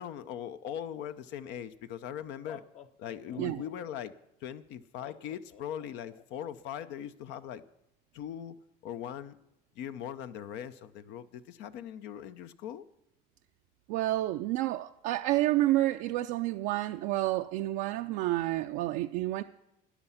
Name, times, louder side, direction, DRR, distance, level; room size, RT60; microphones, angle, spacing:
voice 1, 0.0-2.6 3.0-4.1 4.4-7.6 8.1-8.6 8.8-9.4 9.8-12.8, left 9 dB, 70° left, 0.7 m, -40 dB
Laughter, 2.4-4.0 5.0-6.2, left 8 dB, 40° left, 0.8 m, -50 dB
voice 2, 13.9-19.4, right 16 dB, 75° right, 0.5 m, -29 dB
13.0 x 9.9 x 5.7 m
supercardioid pair, 110°, 19 cm